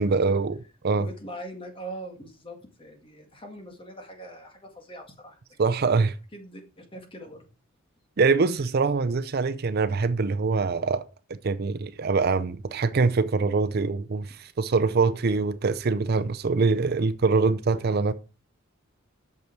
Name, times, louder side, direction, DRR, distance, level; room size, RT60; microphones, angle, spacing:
voice 1, 0.0-1.1 5.6-6.1 8.2-11.0 11.4-18.1, right 4 dB, 50° right, 0.5 m, -24 dB
voice 2, 1.0-5.4 6.3-7.5, right 1 dB, 25° left, 1.9 m, -42 dB
8.2 x 6.6 x 4.5 m
head